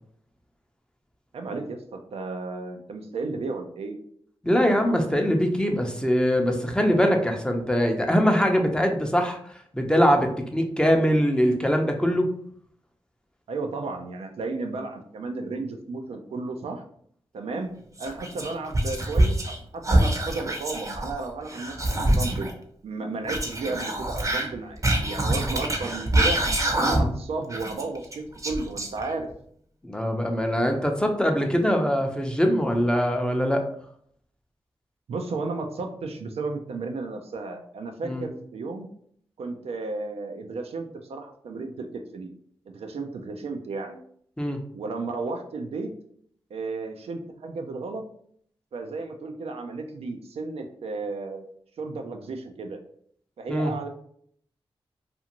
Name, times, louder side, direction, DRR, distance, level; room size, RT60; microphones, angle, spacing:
voice 1, 1.3-4.0 13.5-16.8 17.3-17.7 18.0-22.5 22.8-26.4 26.8-29.3 35.1-38.9 39.4-41.9 42.1-42.3 42.7-44.0 44.7-45.9 46.5-48.0 48.7-51.5 51.8-52.8 53.4-53.9, right 3 dB, 70° right, 4 dB, 0.4 m, -33 dB
voice 2, 4.4-9.4 9.7-12.3 26.8-27.1 29.8-33.6 38.0-38.3 44.4-44.6 53.5-53.7, equal, 10° left, 3 dB, 0.6 m, -22 dB
Whispering, 18.0-19.6 19.8-22.5 23.2-27.2 27.5-29.3, right 1 dB, 30° right, 0.7 m, -25 dB
2.5 x 2.4 x 2.8 m, 0.63 s
cardioid pair, 45°, 10 cm